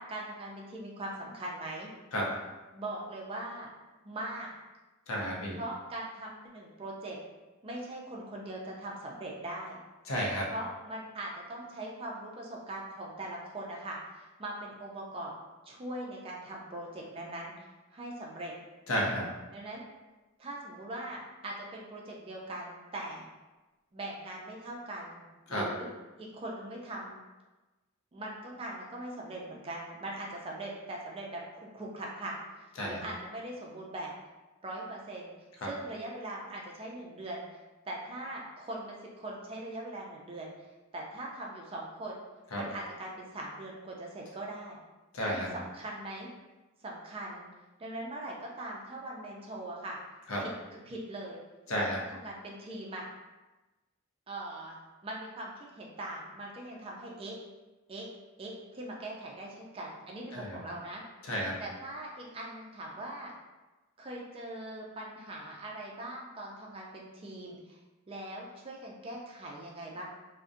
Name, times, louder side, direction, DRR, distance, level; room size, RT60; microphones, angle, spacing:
voice 1, 0.0-1.9 2.7-3.7 4.0-4.5 5.6-7.2 7.6-9.8 10.4-15.3 15.6-18.5 19.5-19.9 20.4-23.3 23.9-25.9 26.2-27.2 28.1-32.4 32.8-34.1 34.6-35.3 35.6-37.5 37.9-40.5 40.9-42.2 42.6-44.8 45.3-46.3 46.8-47.5 47.8-50.0 50.4-51.4 51.8-53.1 54.3-57.4 57.9-58.1 58.4-61.0 61.3-63.3 64.0-67.8 68.1-70.0, right 1 dB, 25° right, -2 dB, 0.4 m, -41 dB
voice 2, 5.1-5.6 10.1-10.5 18.9-19.3 25.5-25.6 32.8-33.0 35.6-35.7 42.5-42.6 45.1-45.5 50.3-50.4 51.7-52.0 60.3-60.6 61.2-61.5, equal, 75° left, -2 dB, 0.6 m, -31 dB
2.5 x 2.1 x 2.4 m, 1.1 s
head